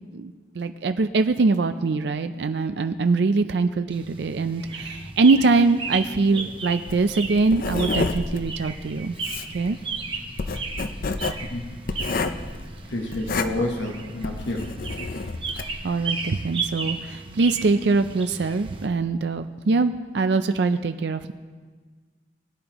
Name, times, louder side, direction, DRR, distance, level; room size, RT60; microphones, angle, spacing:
voice 1, 0.1-9.2 9.5-9.8 15.8-21.3, right 3 dB, 65° right, 9 dB, 0.4 m, -23 dB
sound 1, 3.9-18.9, right 4 dB, 30° right, 0.9 m, -35 dB
Writing, 6.9-15.8, left 3 dB, 50° left, 0.6 m, -30 dB
voice 2, 12.9-14.7, left 1 dB, 85° left, 1 dB, 1.2 m, -29 dB
21.0 x 10.5 x 3.0 m, 1.5 s
head